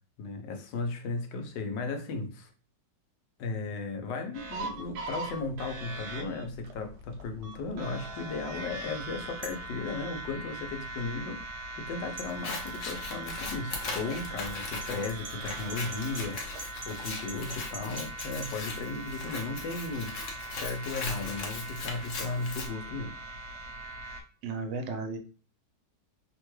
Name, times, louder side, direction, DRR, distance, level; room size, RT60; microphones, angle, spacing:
voice 1, 0.2-2.5 3.4-20.2 20.5-23.2, left 3 dB, 85° left, 1.3 m, -36 dB
sound 1, 4.3-24.2, right 2 dB, 70° right, 1.0 m, -41 dB
sound 2, 9.4-9.7 12.2-12.3 14.8-18.5, right 2 dB, 55° right, 0.6 m, -43 dB
Scissors, 12.3-22.7, left 3 dB, 60° left, 0.8 m, -39 dB
voice 2, 24.4-25.2, right 4 dB, 90° right, 1.3 m, -34 dB
3.2 x 2.2 x 3.0 m
omnidirectional pair, 1.9 m